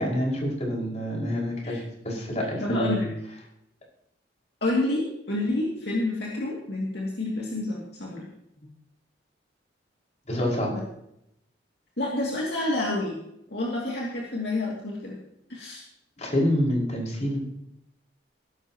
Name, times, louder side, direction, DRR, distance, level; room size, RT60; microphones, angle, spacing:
voice 1, 0.0-3.0 10.3-10.8 16.2-17.4, equal, 40° left, -2 dB, 5.6 m, -27 dB
voice 2, 2.4-3.1 4.6-8.3 12.0-13.2 13.5-15.2 15.5-15.8, left 2 dB, 65° left, -3 dB, 2.7 m, -28 dB
17.0 x 13.5 x 3.1 m, 0.78 s
head